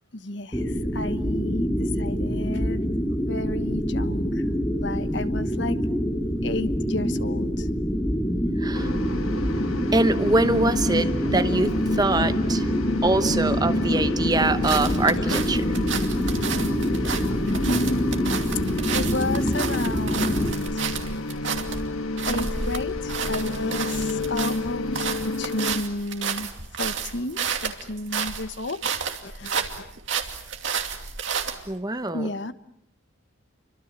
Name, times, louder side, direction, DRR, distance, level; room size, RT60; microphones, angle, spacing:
voice 1, 0.1-4.5 4.8-5.8 6.4-7.7 15.2-15.3 16.5-16.6 16.9-17.2 17.7-18.4 18.9-20.9 21.1-21.2 22.3-26.5 26.8-28.8 29.2-29.9 32.1-32.5, left 2 dB, 60° left, 12 dB, 1.2 m, -32 dB
sound 1, 0.5-20.5, equal, 10° left, 1.8 m, -26 dB
voice 2, 8.6-8.9 9.9-12.7 13.0-15.6 31.7-32.3, right 2 dB, 20° right, 10 dB, 1.0 m, -24 dB
sound 2, 8.7-25.8, left 2 dB, 90° left, 1.5 m, -29 dB
sound 3, 14.3-31.7, right 6 dB, 65° right, 2.6 m, -31 dB
29.5 x 25.0 x 7.6 m, 0.72 s
head